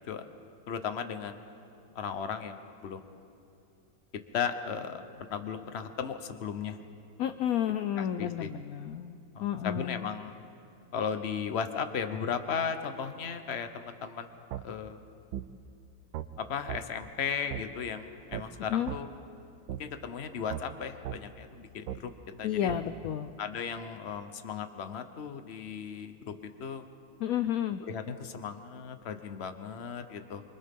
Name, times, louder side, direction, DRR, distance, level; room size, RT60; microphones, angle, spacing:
voice 1, 0.7-1.4 1.9-2.6 2.8-3.0 4.3-5.0 5.3-6.8 8.0-8.5 9.3-10.3 10.9-14.3 14.6-15.0 16.4-19.1 19.8-22.1 22.4-22.7 23.4-26.1 26.6-26.8 27.9-30.4, left 7 dB, 45° left, 8 dB, 1.0 m, -36 dB
voice 2, 7.2-10.1 18.7-18.9 22.4-23.3 27.2-27.8, left 10 dB, 70° left, 9 dB, 0.9 m, -31 dB
sound 1, 14.5-14.6 15.3-15.5 16.1-16.3 16.7-16.8 17.5-17.6 18.3-18.5 18.9-19.0 19.7-19.8 20.5-20.6 21.0-21.2 21.9-22.0 22.7-22.8, right 12 dB, 85° right, 1.4 m, -36 dB
29.0 x 25.0 x 3.7 m, 2.6 s
omnidirectional pair, 2.0 m